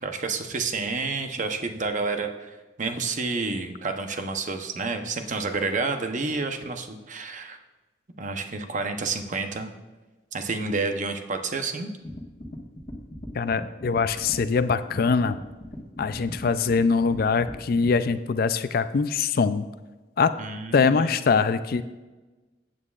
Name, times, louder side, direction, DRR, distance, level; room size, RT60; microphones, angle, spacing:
voice 1, 0.0-7.6 8.2-9.7 10.3-11.9 20.4-21.1 21.4-21.8, right 4 dB, 45° right, 6 dB, 0.8 m, -30 dB
sound 1, 12.0-17.9, left 1 dB, 30° left, 1.4 m, -40 dB
voice 2, 13.3-15.4 16.0-19.7 20.2-20.3 20.7-21.8, left 5 dB, 55° left, 12 dB, 0.4 m, -23 dB
14.0 x 8.6 x 2.4 m, 1.2 s
head